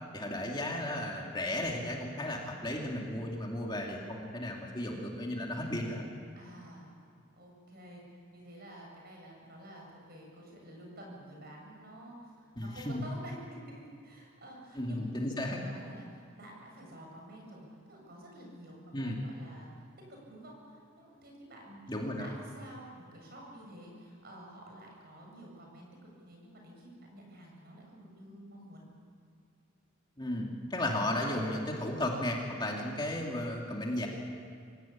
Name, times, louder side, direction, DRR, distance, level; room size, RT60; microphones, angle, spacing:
voice 1, 0.1-6.0 12.6-13.0 14.8-15.6 18.9-19.2 21.9-22.3 30.2-34.1, left 1 dB, 20° left, -1 dB, 2.6 m, -34 dB
voice 2, 6.4-6.9 7.3-15.2 15.5-28.9, right 1 dB, 50° right, -1 dB, 7.5 m, -50 dB
25.5 x 17.5 x 8.7 m, 2.3 s
head